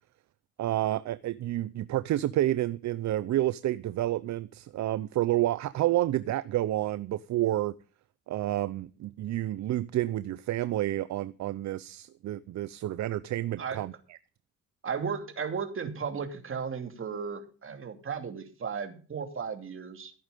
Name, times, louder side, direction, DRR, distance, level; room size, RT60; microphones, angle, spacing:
voice 1, 0.6-7.8 8.3-14.2, right 14 dB, 65° right, 0.6 m, -29 dB
voice 2, 14.8-20.1, right 6 dB, 45° right, 2.8 m, -35 dB
16.0 x 8.7 x 5.2 m
cardioid pair, 90°, 30 cm